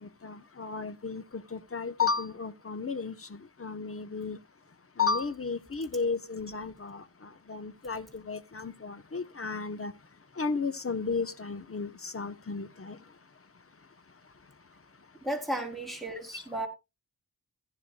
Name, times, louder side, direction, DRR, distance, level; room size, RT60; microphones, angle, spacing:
voice 1, 0.0-4.4 5.0-9.9 10.4-13.0 16.3-16.4, left 5 dB, 40° left, 1.0 m, -34 dB
voice 2, 15.2-16.7, right 1 dB, ahead, 3.9 m, -34 dB
16.0 x 10.5 x 2.3 m
wide cardioid pair, 65°, 36 cm